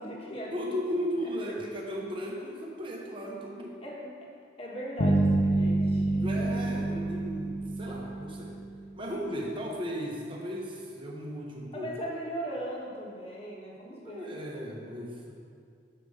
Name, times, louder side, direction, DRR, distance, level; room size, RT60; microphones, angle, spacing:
voice 1, 0.0-1.3 3.2-3.3 3.8-4.1 4.6-6.7 11.7-14.3, right 1 dB, 30° left, -4 dB, 1.3 m, -39 dB
voice 2, 0.5-3.8 6.2-8.6 9.0-11.9 14.0-15.3, equal, 25° right, -1 dB, 1.1 m, -36 dB
sound 1, 5.0-9.0, right 2 dB, 45° left, 0.7 m, -27 dB
6.7 x 5.1 x 6.5 m, 2.2 s
head